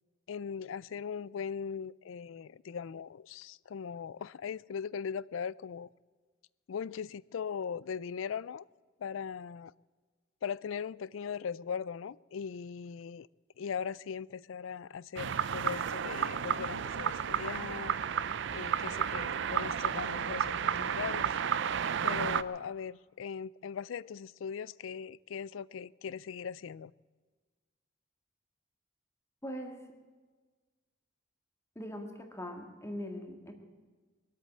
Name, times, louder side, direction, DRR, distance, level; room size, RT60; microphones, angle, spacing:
voice 1, 0.3-5.9 6.7-8.6 9.0-9.7 10.4-13.3 13.6-17.9 18.5-21.3 22.0-26.9, left 6 dB, 80° left, 22 dB, 0.4 m, -39 dB
sound 1, 15.2-22.4, right 7 dB, 65° right, 0.5 m, -32 dB
voice 2, 29.4-29.8 31.8-33.5, equal, 15° left, 3 dB, 2.0 m, -41 dB
22.5 x 8.4 x 7.5 m, 1.4 s
head